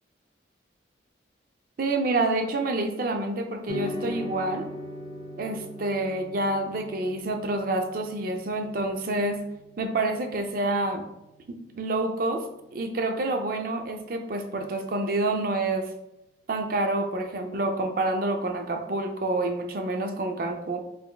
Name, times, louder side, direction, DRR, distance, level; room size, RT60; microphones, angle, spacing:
voice 1, 1.8-4.7 5.4-9.4 9.8-11.0 11.5-12.4 12.7-15.9 16.5-20.8, right 2 dB, 50° right, 5 dB, 0.4 m, -28 dB
sound 1, 3.7-12.2, left 1 dB, 60° left, 0.8 m, -40 dB
4.0 x 3.3 x 2.3 m, 0.87 s
head